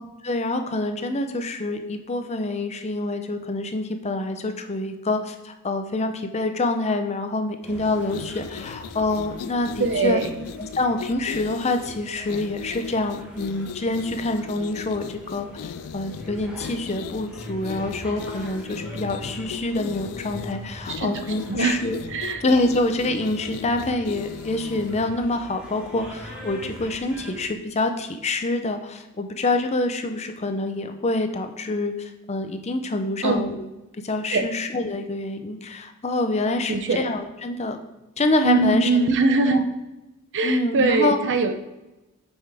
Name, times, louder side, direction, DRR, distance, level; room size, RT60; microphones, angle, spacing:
voice 1, 0.2-10.2 10.6-22.0 22.4-33.6 34.0-37.8 38.2-38.9 39.5-39.6 40.4-41.2, left 2 dB, 30° left, 7 dB, 0.6 m, -26 dB
sound 1, 7.6-27.5, equal, 5° right, 1.6 m, -42 dB
sound 2, 8.0-25.1, left 7 dB, 85° left, 0.3 m, -38 dB
voice 2, 9.8-10.5 21.0-21.8 22.1-22.4 33.2-33.5 34.3-34.5 36.7-37.0 38.4-39.7 40.3-41.5, right 3 dB, 55° right, 7 dB, 0.7 m, -22 dB
8.1 x 5.5 x 3.5 m, 1.0 s
head